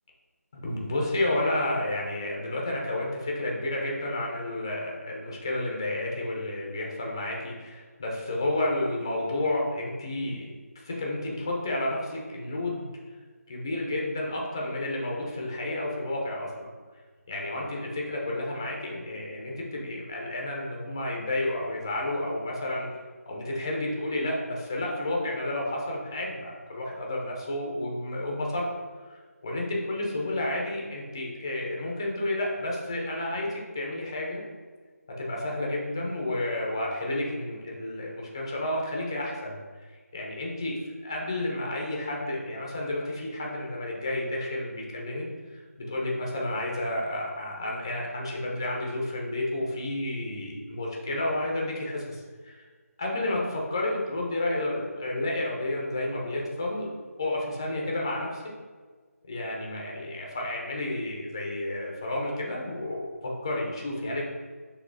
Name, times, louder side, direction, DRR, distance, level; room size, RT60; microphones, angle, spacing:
voice 1, 0.5-12.9 13.5-16.5 17.3-22.9 23.3-28.6 29.1-34.4 35.2-39.6 40.1-40.7 41.0-52.6 53.0-56.9 57.2-58.4 59.3-63.1 63.4-64.2, left 1 dB, 15° left, -2 dB, 0.4 m, -31 dB
6.0 x 2.7 x 2.5 m, 1.5 s
figure-of-eight pair, 170°, 9 cm